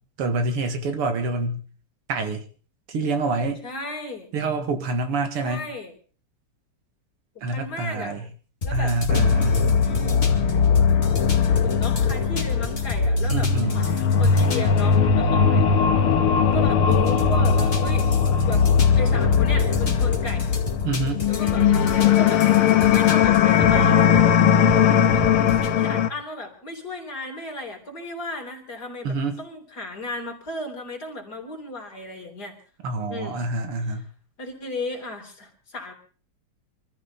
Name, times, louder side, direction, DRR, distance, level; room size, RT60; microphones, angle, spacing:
voice 1, 0.2-1.6 2.1-2.4 2.9-3.7 4.3-5.7 7.4-8.3 8.7-9.8 13.3-13.8 20.8-21.3 29.0-29.4 32.8-34.1, right 3 dB, 90° right, 2.7 m, -27 dB
voice 2, 3.6-4.3 5.4-5.9 7.3-8.2 8.6-9.0 9.8-10.2 11.6-15.6 16.5-18.1 18.5-18.7 19.0-20.4 21.3-21.7 22.0-22.5 22.9-24.4 25.1-32.5 33.1-33.5 33.9-34.0 34.4-35.9, left 2 dB, 45° left, 4.3 m, -35 dB
sound 1, 8.6-25.8, left 1 dB, 25° left, 2.3 m, -30 dB
sound 2, 9.1-26.1, left 7 dB, 80° left, 2.0 m, -19 dB
25.0 x 14.0 x 4.1 m
omnidirectional pair, 2.4 m